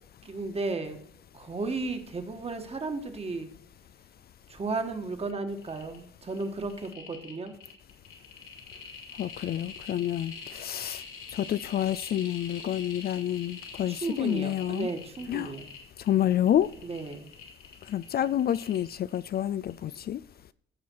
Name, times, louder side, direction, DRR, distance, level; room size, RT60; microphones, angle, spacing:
voice 1, 0.2-1.0 1.3-3.5 4.5-7.5 13.9-15.7 16.8-17.3, right 3 dB, 30° right, 1.6 m, -34 dB
sound 1, 5.2-5.3 5.6-6.0 6.3-19.4 19.6-19.7, left 5 dB, 85° left, 2.6 m, -44 dB
voice 2, 9.2-11.0 11.3-14.9 15.3-15.5 16.0-16.7 17.9-20.2, left 11 dB, 50° left, 0.4 m, -28 dB
16.0 x 5.5 x 4.7 m
cardioid pair, 90°, 20 cm